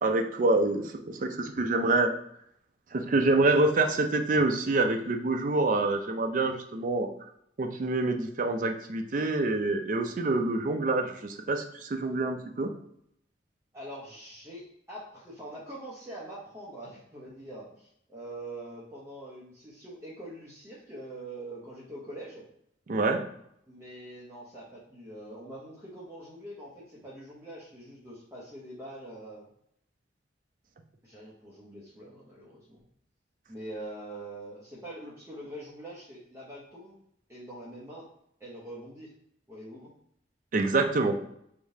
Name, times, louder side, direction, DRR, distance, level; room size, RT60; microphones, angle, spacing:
voice 1, 0.0-2.1 2.9-7.1 7.6-12.7 22.9-23.2 40.5-41.2, right 2 dB, 45° right, 4 dB, 0.4 m, -26 dB
voice 2, 13.7-22.4 23.7-29.5 31.0-32.8 33.5-37.0 37.3-38.1 38.4-39.1 39.5-39.9, right 1 dB, 15° right, -7 dB, 0.7 m, -44 dB
3.6 x 2.7 x 4.7 m, 0.72 s
head